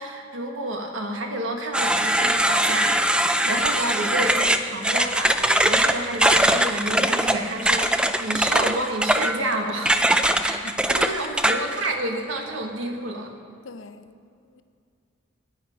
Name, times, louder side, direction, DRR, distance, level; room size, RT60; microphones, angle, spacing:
voice 1, 0.0-10.0 10.4-13.3, right 1 dB, 85° right, 1.5 m, -30 dB
sound 1, 1.7-11.9, right 1 dB, 5° right, 0.3 m, -21 dB
voice 2, 10.2-10.7 13.6-14.6, left 3 dB, 80° left, 0.7 m, -45 dB
13.5 x 9.3 x 5.1 m
head